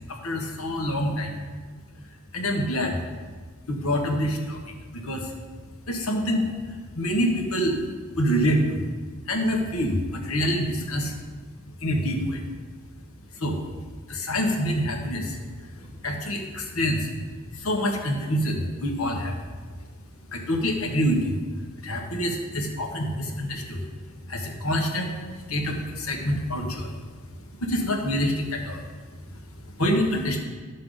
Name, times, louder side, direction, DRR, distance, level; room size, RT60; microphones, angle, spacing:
voice 1, 0.2-1.3 2.3-3.0 3.7-4.6 4.9-5.2 5.9-6.5 6.9-7.8 8.2-8.8 9.3-11.1 11.8-12.4 13.4-13.6 14.1-15.4 16.0-17.1 17.6-19.3 20.3-21.3 21.8-23.8 24.3-25.1 25.5-26.9 27.6-28.8 29.8-30.4, equal, 75° left, 2 dB, 1.4 m, -26 dB
11.5 x 6.7 x 3.9 m, 1.6 s
head